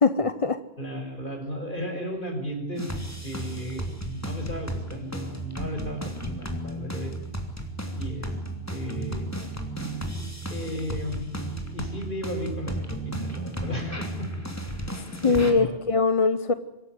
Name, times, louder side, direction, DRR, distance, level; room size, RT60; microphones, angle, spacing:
voice 1, 0.0-0.6 15.2-16.5, left 4 dB, 35° left, 12 dB, 0.9 m, -22 dB
voice 2, 0.8-2.9 3.2-7.1 7.9-8.3 8.7-9.3 10.5-11.5 11.7-14.3 14.6-14.7 15.3-15.8, equal, 55° left, 4 dB, 5.7 m, -34 dB
sound 1, 2.8-15.5, right 1 dB, 15° left, 3.1 m, -34 dB
25.0 x 14.5 x 9.6 m, 1.0 s
omnidirectional pair, 1.0 m